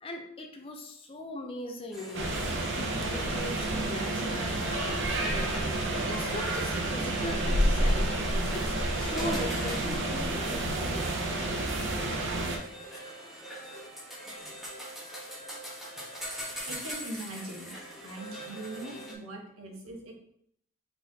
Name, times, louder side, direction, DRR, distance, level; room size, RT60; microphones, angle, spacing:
voice 1, 0.0-2.4 2.7-5.5 6.1-11.1, left 1 dB, 25° left, 3 dB, 0.6 m, -40 dB
sound 1, 1.9-19.1, right 1 dB, ahead, 1.1 m, -43 dB
sound 2, 2.1-12.6, right 1 dB, 60° right, 0.8 m, -29 dB
voice 2, 16.6-17.7 18.0-20.1, right 1 dB, 80° right, 0 dB, 1.2 m, -41 dB
4.2 x 4.2 x 2.8 m, 0.69 s
head